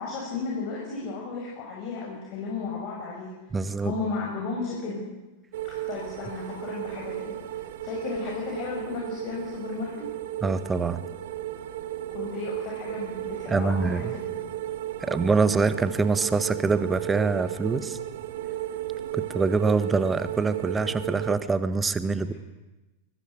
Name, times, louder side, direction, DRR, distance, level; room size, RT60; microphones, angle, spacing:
voice 1, 0.0-3.3 3.8-5.1 5.6-10.1 12.1-14.2, left 4 dB, 45° left, -2 dB, 6.7 m, -34 dB
voice 2, 3.5-3.9 10.4-11.1 13.5-14.1 15.0-18.0 19.1-22.3, right 4 dB, 15° right, 13 dB, 1.6 m, -25 dB
sound 1, 5.5-21.4, right 13 dB, 55° right, 1.7 m, -34 dB
23.5 x 20.5 x 8.3 m, 1.1 s
figure-of-eight pair, 90°, 0 cm